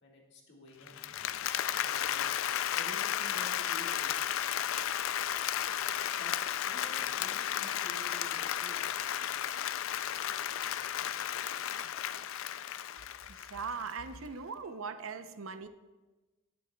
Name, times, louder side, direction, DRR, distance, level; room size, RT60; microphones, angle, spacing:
voice 1, 0.0-1.0 1.8-2.4 2.7-4.3 6.2-6.4 6.6-8.9, equal, 55° left, -1 dB, 1.8 m, -51 dB
Applause, 0.9-13.9, left 10 dB, 80° left, 0.4 m, -34 dB
voice 2, 13.3-15.7, right 5 dB, 85° right, 10 dB, 0.6 m, -40 dB
18.5 x 7.0 x 2.3 m, 1.2 s
head